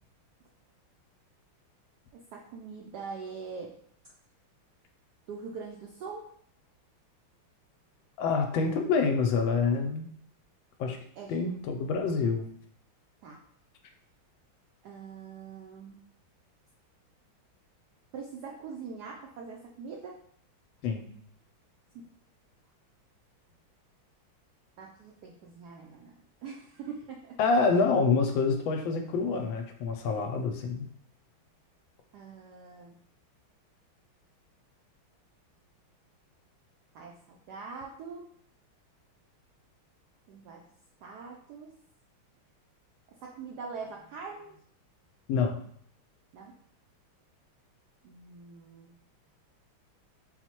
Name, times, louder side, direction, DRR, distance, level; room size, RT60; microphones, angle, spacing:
voice 1, 2.1-3.7 5.3-6.3 11.2-11.5 13.2-13.4 14.8-16.0 18.1-20.2 24.8-26.1 26.4-27.4 30.1-30.3 32.1-33.0 36.9-38.4 40.3-40.7 41.0-41.7 43.2-44.6 46.3-46.6 48.0-48.9, right 5 dB, 80° right, 0 dB, 0.9 m, -43 dB
voice 2, 8.2-10.1 10.8-11.0 11.3-12.5 20.8-21.1 27.4-30.9 45.3-45.6, left 4 dB, 75° left, 4 dB, 1.2 m, -27 dB
4.3 x 2.1 x 4.3 m, 0.65 s
omnidirectional pair, 2.3 m